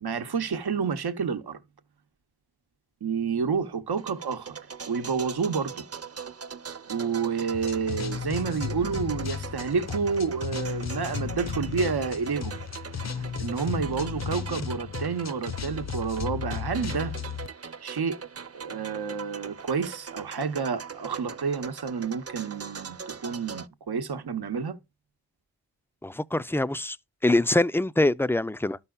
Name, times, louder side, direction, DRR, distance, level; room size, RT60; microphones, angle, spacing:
voice 1, 0.0-1.6 3.0-5.9 6.9-17.1 17.8-18.2 18.5-24.8, right 5 dB, 90° right, 0.9 m, -30 dB
sound 1, 4.0-23.7, right 6 dB, 40° right, 0.7 m, -41 dB
sound 2, 7.5-17.5, left 7 dB, 45° left, 0.6 m, -34 dB
voice 2, 26.0-27.0 27.2-28.8, left 2 dB, 5° left, 0.4 m, -24 dB
12.5 x 5.6 x 2.3 m
cardioid pair, 45°, 37 cm